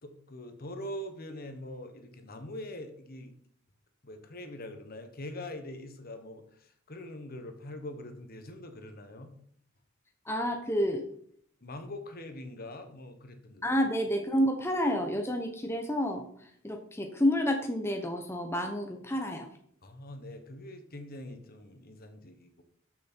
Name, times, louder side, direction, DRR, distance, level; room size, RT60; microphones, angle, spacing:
voice 1, 0.0-3.3 4.0-9.3 11.6-13.7 19.8-22.6, left 1 dB, 50° left, 7 dB, 1.4 m, -43 dB
voice 2, 10.2-11.0 13.6-19.5, equal, 10° left, 3 dB, 0.9 m, -29 dB
12.5 x 6.5 x 4.5 m, 0.63 s
head